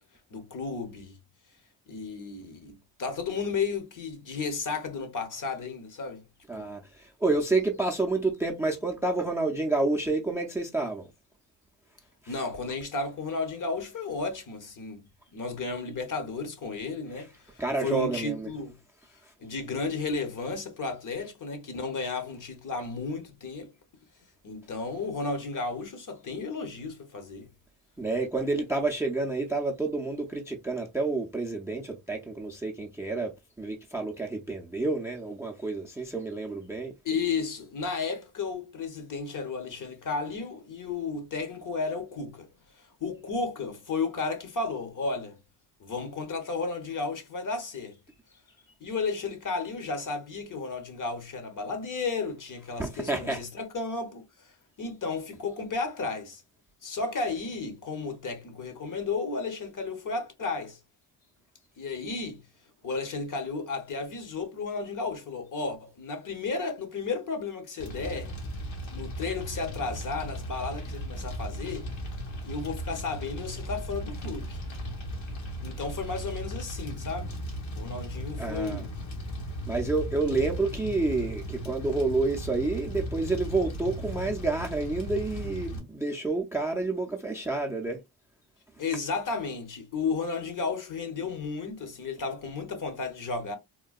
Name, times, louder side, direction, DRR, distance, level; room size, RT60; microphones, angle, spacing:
voice 1, 0.3-1.2 1.9-6.2 6.6-6.7 12.3-15.1 15.3-18.8 19.4-23.7 24.4-27.5 28.4-28.5 37.0-42.5 43.0-45.4 45.8-48.0 48.8-54.2 54.8-56.4 56.8-60.8 61.8-62.4 62.8-68.3 68.9-71.9 72.4-74.6 75.6-77.4 77.7-78.9 88.8-93.6, left 4 dB, 40° left, 0.8 m, -33 dB
voice 2, 6.5-11.1 12.2-12.4 17.6-18.5 28.0-33.3 33.6-36.9 52.8-53.4 78.4-78.8 79.7-88.0, right 3 dB, 5° right, 0.4 m, -29 dB
Fire, 67.8-85.8, equal, 75° left, 1.2 m, -37 dB
3.7 x 2.2 x 2.3 m
cardioid pair, 95°, 47 cm